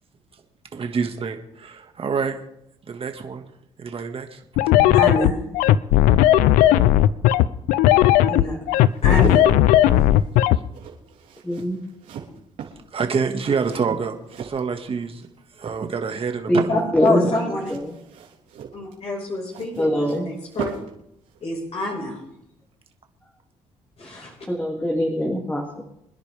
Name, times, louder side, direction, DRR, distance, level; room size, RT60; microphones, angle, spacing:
voice 1, 0.7-2.4 2.9-3.4 3.8-4.4 12.9-15.2 15.6-16.8, right 5 dB, 45° right, 5 dB, 1.8 m, -26 dB
sound 1, 4.6-10.6, left 13 dB, 85° left, 0.5 m, -15 dB
voice 2, 4.8-5.4 8.3-8.6 9.0-9.4 9.9-10.1 16.7-17.7 18.7-20.7 21.4-22.2 24.0-24.3, left 1 dB, 50° left, -2 dB, 5.1 m, -26 dB
sound 2, 8.8-15.3 15.6-16.2 17.5-21.0 21.3-21.4, right 8 dB, 75° right, 3.4 m, -38 dB
voice 3, 11.4-11.8 16.5-18.0 19.8-20.3 24.5-25.8, equal, 10° left, 0 dB, 2.4 m, -23 dB
26.0 x 10.5 x 3.5 m, 0.80 s
supercardioid pair, 65°, 13 cm